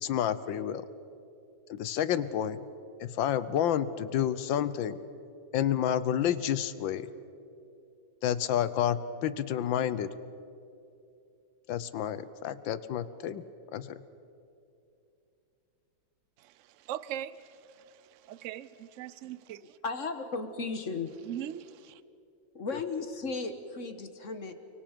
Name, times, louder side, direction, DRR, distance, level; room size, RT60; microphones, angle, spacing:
voice 1, 0.0-0.9 1.7-2.6 3.0-5.0 5.5-7.1 8.2-10.1 11.7-13.4 13.7-14.0, left 10 dB, 80° left, 1.6 m, -29 dB
voice 2, 16.4-19.8 21.2-22.0, right 11 dB, 90° right, 0.6 m, -41 dB
voice 3, 19.8-21.1 22.5-24.5, left 4 dB, 45° left, 1.4 m, -35 dB
30.0 x 24.0 x 5.2 m
omnidirectional pair, 2.1 m